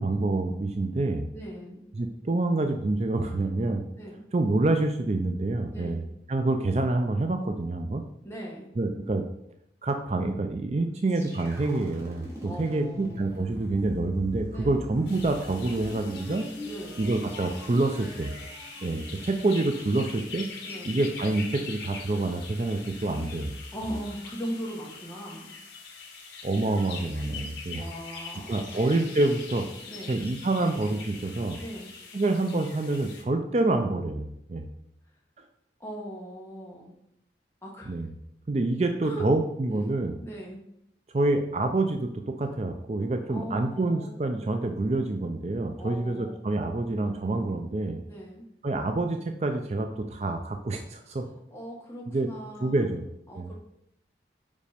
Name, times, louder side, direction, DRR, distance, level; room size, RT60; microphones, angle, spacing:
voice 1, 0.0-1.2 1.9-3.8 4.3-6.0 6.3-8.0 8.8-9.2 9.8-16.5 17.0-18.3 18.8-20.5 20.9-23.5 26.4-27.8 28.5-29.7 30.1-31.6 32.1-34.6 37.9-38.1 38.5-40.2 41.1-48.0 48.6-51.2 52.1-52.3 52.6-53.0 53.4-53.5, right 2 dB, 35° right, 6 dB, 0.4 m, -27 dB
voice 2, 1.3-1.8 4.0-4.2 5.7-6.1 8.2-8.7 12.4-13.2 14.5-14.8 16.6-17.0 20.6-21.0 23.7-25.5 27.6-28.8 29.9-30.1 31.6-31.9 35.8-36.9 37.6-38.1 39.0-39.2 39.7-39.9 40.2-40.6 43.3-44.2 45.8-46.4 48.1-48.5 51.5-52.9 53.3-53.6, right 1 dB, 15° left, -3 dB, 1.6 m, -39 dB
sound 1, 11.1-20.9, left 1 dB, 15° right, 2.0 m, -43 dB
sound 2, 15.1-33.2, left 4 dB, 75° left, 1.3 m, -43 dB
5.3 x 5.2 x 5.0 m, 0.78 s
head